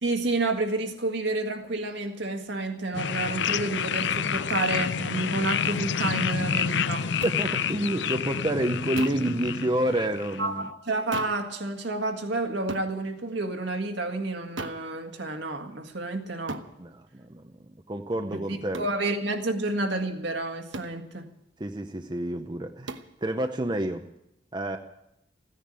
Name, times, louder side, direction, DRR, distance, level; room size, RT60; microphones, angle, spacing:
voice 1, 0.0-7.1 10.4-16.6 18.5-21.3, right 2 dB, 70° right, 1.8 m, -30 dB
sound 1, 2.9-10.4, left 7 dB, 70° left, 0.5 m, -28 dB
voice 2, 7.2-10.7 16.8-17.4 17.9-18.8 21.6-24.0 24.5-24.8, right 1 dB, 25° right, 0.7 m, -29 dB
sound 2, 7.2-7.4 9.0-9.3 11.1-11.5 12.7-12.9 14.6-14.9 16.5-16.7 18.7-19.0 20.7-21.0 22.9-23.1, right 2 dB, 90° right, 1.1 m, -37 dB
15.5 x 10.0 x 9.0 m
head